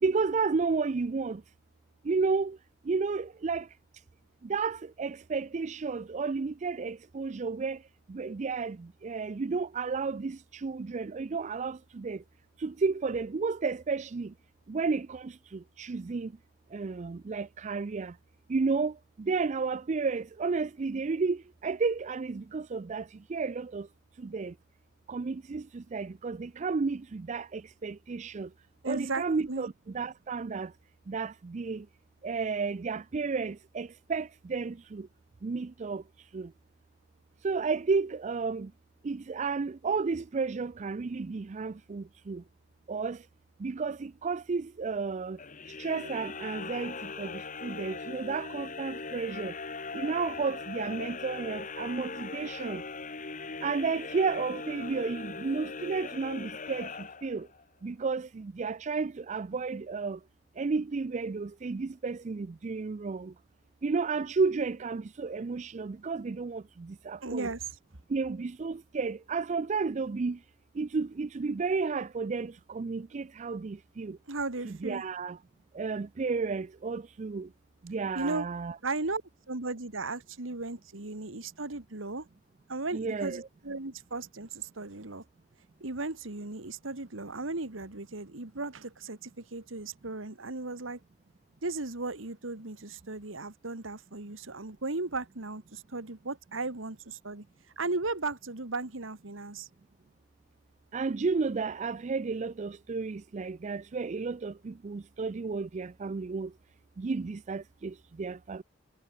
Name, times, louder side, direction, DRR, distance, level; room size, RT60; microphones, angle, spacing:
voice 1, 0.0-1.4 2.0-2.6 2.8-3.7 4.4-7.8 8.1-12.2 12.6-14.3 14.7-16.3 16.7-18.2 18.5-23.9 24.2-24.5 25.1-28.5 28.8-30.7 31.1-31.9 32.2-35.1 35.4-36.0 36.3-36.5 37.4-38.7 39.0-42.4 42.9-43.2 43.6-45.4 45.8-49.6 49.9-52.8 53.6-57.5 57.8-60.2 60.6-63.3 63.8-67.5 68.1-70.4 70.7-74.2 74.7-75.4 75.7-77.5 77.8-78.8 82.9-83.5 100.9-106.5 107.0-108.6, right 4 dB, 35° right, 0.4 m, -32 dB
voice 2, 28.8-29.7 67.2-67.7 74.3-75.0 78.2-78.5 78.8-79.2 79.5-82.3 82.7-85.2 85.8-91.0 91.6-97.4 97.8-99.7, right 3 dB, 85° right, 2.1 m, -36 dB
sound 1, 45.4-57.6, left 4 dB, 40° left, 1.7 m, -40 dB
head